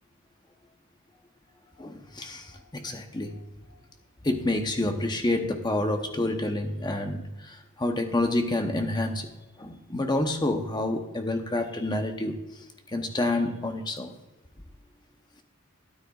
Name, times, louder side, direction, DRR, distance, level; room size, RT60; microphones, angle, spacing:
voice 1, 1.8-3.4 4.2-9.3 9.6-12.4 12.9-14.1, left 2 dB, 20° left, 5 dB, 0.9 m, -28 dB
13.0 x 9.7 x 2.4 m, 1.1 s
head